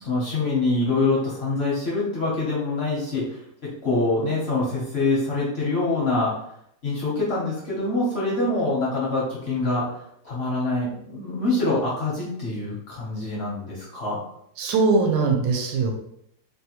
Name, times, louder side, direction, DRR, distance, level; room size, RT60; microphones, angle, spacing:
voice 1, 0.0-3.4 3.8-6.3 6.8-9.9 10.2-14.2, left 2 dB, 55° left, -5 dB, 0.7 m, -25 dB
voice 2, 14.6-15.9, right 4 dB, 80° right, 3 dB, 1.3 m, -21 dB
3.2 x 2.3 x 2.9 m, 0.72 s
omnidirectional pair, 2.0 m